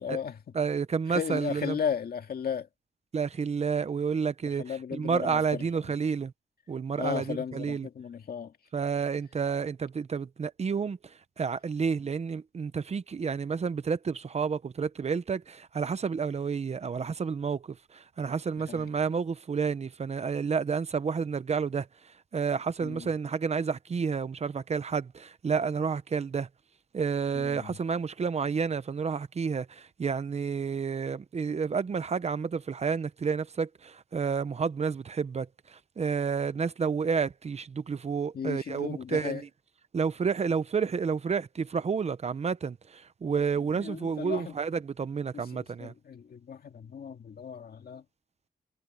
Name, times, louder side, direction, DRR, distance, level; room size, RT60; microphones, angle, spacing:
voice 1, 0.0-0.4 1.1-2.7 4.6-5.6 7.0-8.5 18.7-18.9 22.8-23.1 27.3-27.8 38.3-39.4 43.3-43.4 43.7-44.6 45.3-48.0, left 7 dB, 70° left, 2.0 m, -35 dB
voice 2, 0.5-1.8 3.1-6.3 6.7-7.9 8.7-26.5 26.9-39.5 39.9-45.9, right 6 dB, 40° right, 0.7 m, -30 dB
wide cardioid pair, 165°, 16 cm